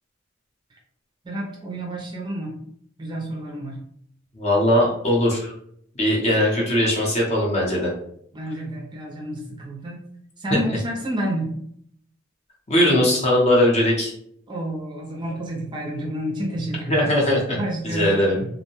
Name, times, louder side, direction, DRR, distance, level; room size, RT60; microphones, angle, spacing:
voice 1, 1.2-2.6 3.0-3.8 8.3-10.1 10.4-11.5 14.5-17.1 17.5-18.5, right 1 dB, 25° right, -2 dB, 0.5 m, -29 dB
voice 2, 4.3-5.5 6.0-7.9 10.5-10.6 12.7-14.1 16.9-17.6 17.8-18.4, left 1 dB, 35° left, -3 dB, 0.7 m, -20 dB
2.6 x 2.1 x 2.9 m, 0.69 s
head